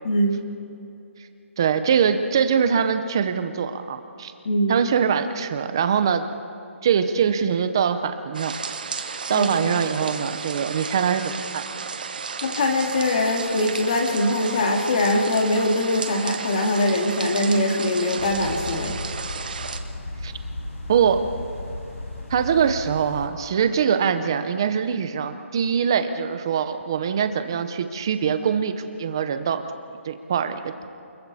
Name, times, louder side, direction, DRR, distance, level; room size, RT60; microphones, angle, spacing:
voice 1, 0.0-0.4 4.5-4.8 9.3-9.5 12.4-19.0, left 1 dB, 30° left, 3 dB, 2.2 m, -22 dB
voice 2, 1.6-4.3 4.7-6.3 6.8-8.6 8.9-11.6 20.2-20.3 20.9-21.3 22.3-28.7 29.0-29.6 30.0-30.9, right 7 dB, 20° right, 9 dB, 0.7 m, -23 dB
sound 1, 8.3-19.8, right 5 dB, 40° right, 1.2 m, -33 dB
sound 2, 18.2-23.3, left 1 dB, 85° left, 6.3 m, -35 dB
29.0 x 22.0 x 4.2 m, 2.7 s
hypercardioid pair, 180°, 7 cm